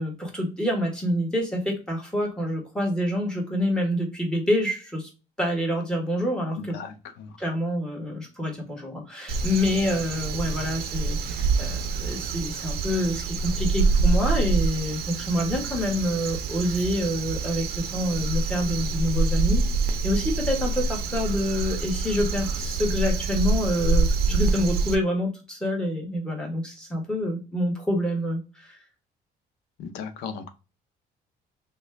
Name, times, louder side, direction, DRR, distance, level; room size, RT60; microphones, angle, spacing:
voice 1, 0.0-5.1 5.4-6.8 7.4-28.8, left 1 dB, 5° left, 0 dB, 1.3 m, -27 dB
voice 2, 6.6-7.4 29.8-30.5, left 6 dB, 90° left, 9 dB, 0.6 m, -37 dB
Crow, 9.3-25.0, right 3 dB, 65° right, 0.5 m, -26 dB
3.0 x 2.3 x 3.3 m, 0.30 s
cardioid pair, 110°, 17 cm